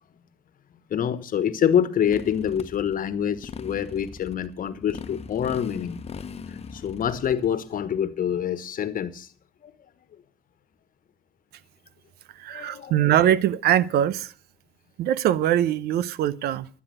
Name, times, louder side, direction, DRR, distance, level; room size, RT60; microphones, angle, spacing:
voice 1, 0.9-6.0 6.5-9.3 12.5-13.1, left 9 dB, 60° left, 1.4 m, -26 dB
Motorcycle, 2.1-7.5, left 6 dB, 40° left, 1.2 m, -40 dB
voice 2, 12.4-14.3 15.0-16.7, right 11 dB, 80° right, 0.8 m, -22 dB
12.0 x 9.4 x 7.8 m
cardioid pair, 75°, 16 cm